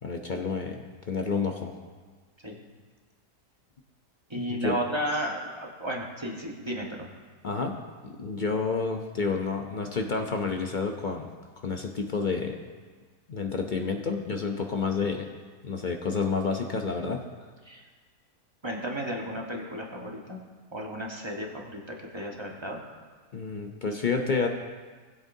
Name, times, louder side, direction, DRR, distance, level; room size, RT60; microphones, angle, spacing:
voice 1, 0.0-1.7 4.5-4.8 7.4-7.8 8.0-11.3 11.6-12.6 13.3-15.3 15.6-17.2 23.3-24.5, left 4 dB, 50° left, 3 dB, 0.5 m, -29 dB
voice 2, 4.3-7.1 17.6-17.8 18.6-20.4 20.7-22.8, equal, 20° right, -1 dB, 1.2 m, -33 dB
19.5 x 8.1 x 2.7 m, 1.5 s
omnidirectional pair, 1.7 m